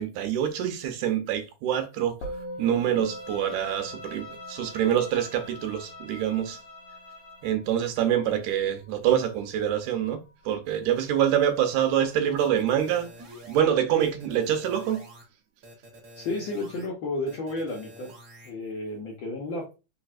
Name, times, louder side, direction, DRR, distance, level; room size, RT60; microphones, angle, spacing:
voice 1, 0.0-2.2 2.6-6.6 7.4-13.1 13.5-15.0, right 10 dB, 80° right, 2.1 m, -26 dB
Musical instrument, 2.2-11.7, right 1 dB, 65° left, 1.6 m, -44 dB
Bowed string instrument, 2.7-7.6, left 3 dB, 45° left, 1.1 m, -45 dB
sound 1, 12.4-13.6 14.0-15.2 15.6-16.9 17.3-18.5, equal, 60° right, 1.0 m, -47 dB
voice 2, 16.1-18.1 18.4-19.8, left 2 dB, 80° left, 1.0 m, -32 dB
4.6 x 4.3 x 2.5 m
omnidirectional pair, 3.6 m